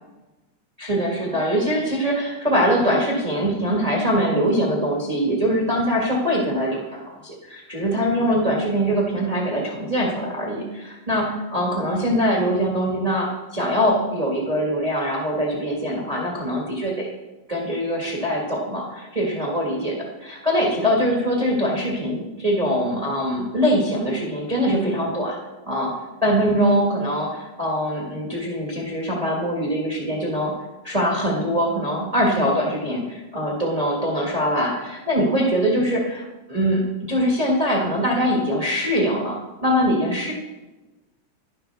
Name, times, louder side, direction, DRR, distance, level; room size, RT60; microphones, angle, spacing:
voice 1, 0.8-17.1 17.5-25.4 25.7-25.9 26.2-30.5 30.8-36.2 36.5-40.3, equal, 60° right, -3 dB, 0.4 m, -23 dB
11.5 x 11.0 x 3.4 m, 1.1 s
omnidirectional pair, 3.8 m